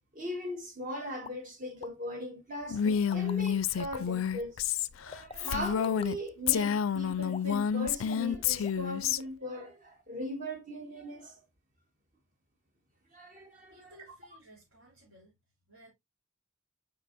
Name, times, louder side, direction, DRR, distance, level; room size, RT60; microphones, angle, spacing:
voice 1, 0.1-4.6 5.0-11.4 13.1-14.0, left 1 dB, 40° right, 1.7 m, -39 dB
sound 1, 1.2-1.4 1.8-1.9 2.8-3.9 5.1-6.1 7.3-7.6 8.1-8.3 8.6-8.9 9.2-9.3, left 5 dB, 30° left, 0.4 m, -46 dB
Female speech woman speaking, 2.7-6.2 6.5-9.2, left 8 dB, 85° left, 0.4 m, -29 dB
voice 2, 13.7-15.4 15.7-15.9, equal, 75° right, 3.5 m, -57 dB
8.3 x 4.9 x 2.6 m
head